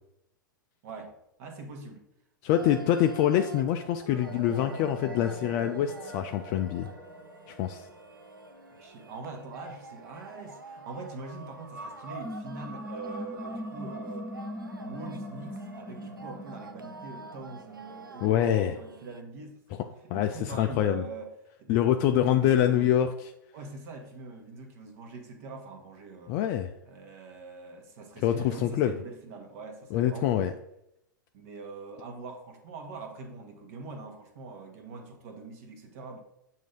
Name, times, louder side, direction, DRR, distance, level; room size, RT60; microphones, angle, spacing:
voice 1, 0.8-2.1 2.4-2.9 8.8-14.3 14.8-19.8 20.1-21.3 21.6-21.8 22.1-23.0 23.5-26.4 26.8-30.5 31.3-36.2, right 3 dB, 45° right, 4 dB, 1.1 m, -43 dB
voice 2, 2.4-6.9 7.5-7.8 18.2-18.7 20.1-21.0 21.7-23.3 26.3-26.7 28.2-28.9 29.9-30.5, left 11 dB, 35° left, 7 dB, 0.3 m, -25 dB
sound 1, 2.5-19.2, right 3 dB, 85° right, 0.4 m, -48 dB
sound 2, 4.1-10.1 10.6-18.7, equal, 15° right, 1.0 m, -42 dB
7.4 x 2.8 x 5.1 m, 0.81 s
figure-of-eight pair, 100°, 11 cm